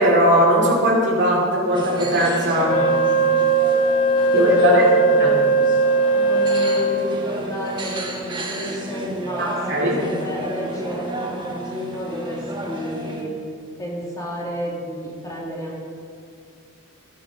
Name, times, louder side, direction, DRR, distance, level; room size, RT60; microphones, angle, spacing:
voice 1, 0.0-2.8 4.3-4.9 5.2-5.3 9.4-9.9, right 1 dB, 55° right, -2 dB, 2.3 m, -18 dB
sound 1, 1.7-13.2, right 1 dB, 20° right, 1.2 m, -32 dB
Wind instrument woodwind instrument, 2.7-7.3, right 3 dB, 35° left, 0.7 m, -19 dB
voice 2, 4.3-5.5 6.1-13.3 13.8-15.9, equal, 15° left, -4 dB, 2.1 m, -30 dB
16.0 x 5.7 x 5.4 m, 2.3 s
head